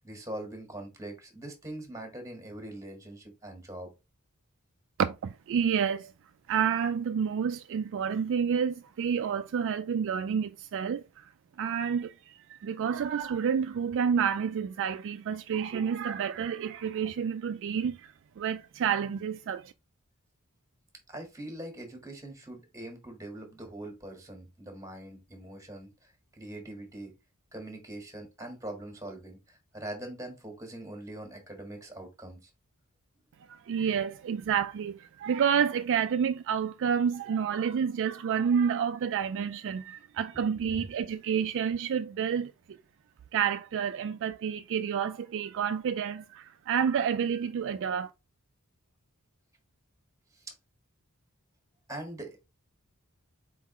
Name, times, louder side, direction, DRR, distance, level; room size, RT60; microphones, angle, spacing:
voice 1, 0.0-3.9 21.1-27.1 27.5-32.5 40.6-40.9 50.3-50.5 51.9-52.4, right 1 dB, 15° right, 1.5 m, -42 dB
voice 2, 5.0-6.1 6.5-11.3 11.6-19.7 33.5-42.5 43.3-48.1, right 7 dB, 60° right, 0.3 m, -29 dB
4.5 x 3.7 x 3.0 m
head